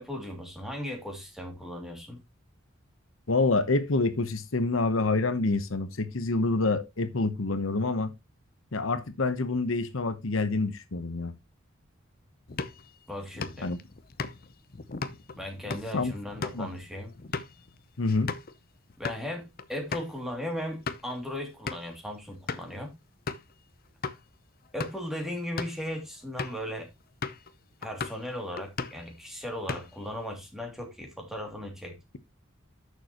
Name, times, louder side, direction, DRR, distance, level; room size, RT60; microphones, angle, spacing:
voice 1, 0.0-2.2 13.1-13.7 15.4-17.1 19.0-22.9 24.7-26.9 27.8-32.0, left 1 dB, ahead, 2.6 m, -37 dB
voice 2, 3.3-8.1 8.7-11.3 13.6-13.8 15.9-16.1 16.5-16.7 18.0-18.3, left 3 dB, 70° left, 1.0 m, -27 dB
sound 1, 12.5-18.5 18.9-19.2 19.6-19.7 19.9-20.1 20.6-21.1 21.7-22.0 22.5-22.8 23.3-23.5 24.0-24.2 24.7-25.1 25.4-25.8 26.4-26.7 27.2-27.5 27.8-28.3 28.6-29.1 29.4-30.1, left 4 dB, 45° left, 0.7 m, -37 dB
11.5 x 6.9 x 3.0 m
head